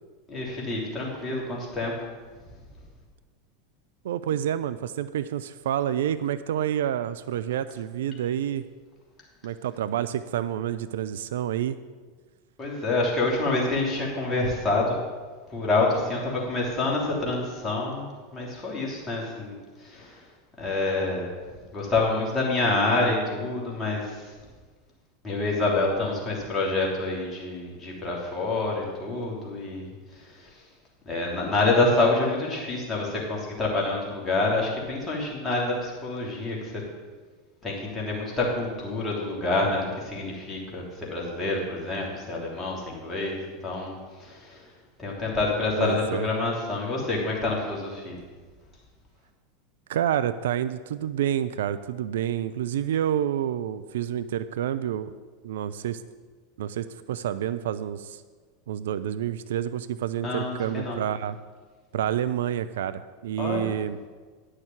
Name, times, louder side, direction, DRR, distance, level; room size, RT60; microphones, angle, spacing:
voice 1, 0.3-1.9 12.6-15.0 15.5-19.6 19.8-20.2 20.6-21.3 21.7-24.2 25.2-29.9 30.2-30.5 31.0-36.8 37.6-44.6 45.0-48.2 60.2-61.0 63.4-63.7, left 2 dB, 20° left, -3 dB, 3.3 m, -27 dB
voice 2, 4.0-8.6 9.4-11.8 45.8-46.3 49.9-55.1 55.4-56.0 56.6-58.2 58.7-61.4 61.9-64.0, right 10 dB, 65° right, 13 dB, 0.4 m, -28 dB
10.0 x 6.5 x 7.2 m, 1.4 s
figure-of-eight pair, 85°, 0 cm